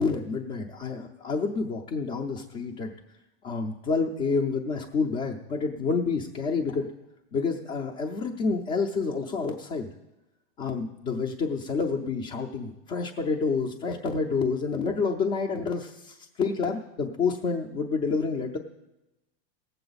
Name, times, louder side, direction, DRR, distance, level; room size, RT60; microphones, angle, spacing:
voice 1, 0.0-2.9 3.4-6.9 7.3-9.9 10.6-18.6, left 4 dB, 20° left, -1 dB, 0.5 m, -28 dB
18.5 x 7.8 x 4.0 m, 0.96 s
supercardioid pair, 165°, 31 cm